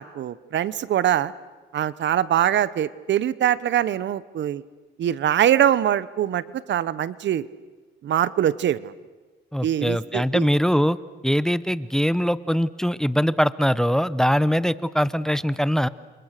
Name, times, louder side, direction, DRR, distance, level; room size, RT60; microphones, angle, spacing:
voice 1, 0.0-1.3 1.7-4.6 5.0-7.5 8.0-8.9 9.6-10.5, right 10 dB, 65° right, 18 dB, 1.0 m, -23 dB
voice 2, 9.5-11.0 11.2-15.9, equal, 5° left, 17 dB, 0.8 m, -22 dB
30.0 x 26.5 x 6.7 m, 1.3 s
cardioid pair, 90°, 20 cm